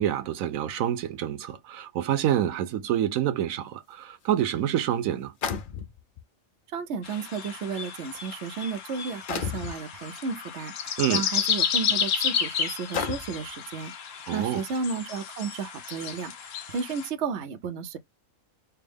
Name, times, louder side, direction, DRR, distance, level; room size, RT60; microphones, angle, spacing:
voice 1, 0.0-5.3 11.0-11.2 14.3-14.6, right 11 dB, 85° right, 1.0 m, -27 dB
sound 1, 4.3-4.4 5.4-6.2 7.1-7.2 8.0-8.3 9.3-9.8 11.1-11.2 11.8-11.9 12.9-13.5, left 6 dB, 55° left, 0.6 m, -32 dB
voice 2, 6.7-13.9 14.3-16.3 16.7-18.0, right 5 dB, 60° right, 0.9 m, -33 dB
sound 2, 7.0-17.1, left 7 dB, 70° left, 1.1 m, -31 dB
4.5 x 2.0 x 3.4 m
omnidirectional pair, 1.4 m